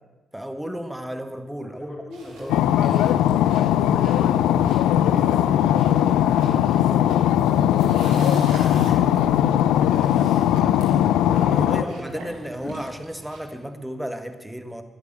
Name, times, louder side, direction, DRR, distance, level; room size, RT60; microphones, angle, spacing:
voice 1, 0.3-3.2 9.7-10.4 11.5-14.8, equal, 5° right, 8 dB, 1.9 m, -34 dB
voice 2, 1.6-2.6 3.7-11.0 11.3-12.2 12.6-12.7, left 2 dB, 40° left, 1 dB, 3.5 m, -37 dB
sound 1, 2.1-13.5, right 3 dB, 85° right, 3.4 m, -45 dB
sound 2, 2.5-11.8, left 11 dB, 80° left, 0.5 m, -19 dB
12.0 x 10.5 x 8.0 m, 1.3 s
hypercardioid pair, 45°, 0 cm